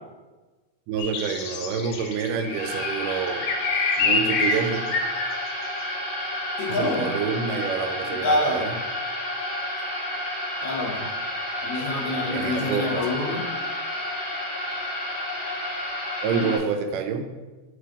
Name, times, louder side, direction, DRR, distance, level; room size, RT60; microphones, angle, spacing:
voice 1, 0.9-3.5 4.0-4.8 6.7-8.8 10.9-11.0 12.3-13.1 16.2-17.3, right 6 dB, 85° right, 6 dB, 2.2 m, -27 dB
sound 1, 1.0-5.3, left 4 dB, 90° left, 1.4 m, -27 dB
sound 2, 2.4-16.6, left 1 dB, 55° left, 1.5 m, -31 dB
voice 2, 6.6-7.1 8.1-8.8 10.6-11.1 11.6-13.4 16.4-16.5, left 2 dB, 70° left, 1 dB, 1.9 m, -27 dB
7.4 x 4.3 x 3.4 m, 1.2 s
omnidirectional pair, 3.7 m